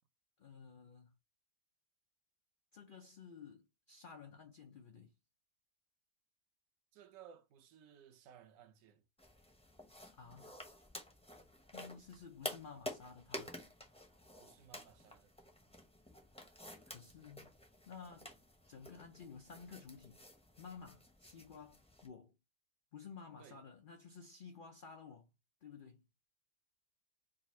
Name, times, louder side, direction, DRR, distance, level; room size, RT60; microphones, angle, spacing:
voice 1, 0.4-1.1 2.7-5.1 10.1-10.5 11.7-13.5 16.9-17.5 17.9-18.3 18.7-20.2 20.6-22.4 22.9-25.3 25.6-26.0, left 5 dB, 70° left, 0.5 m, -53 dB
voice 2, 6.9-9.0 14.4-15.3 23.4-23.6, right 9 dB, 65° right, 1.0 m, -59 dB
sound 1, 9.2-22.1, left 1 dB, 5° left, 0.6 m, -51 dB
3.9 x 2.4 x 4.1 m
omnidirectional pair, 1.6 m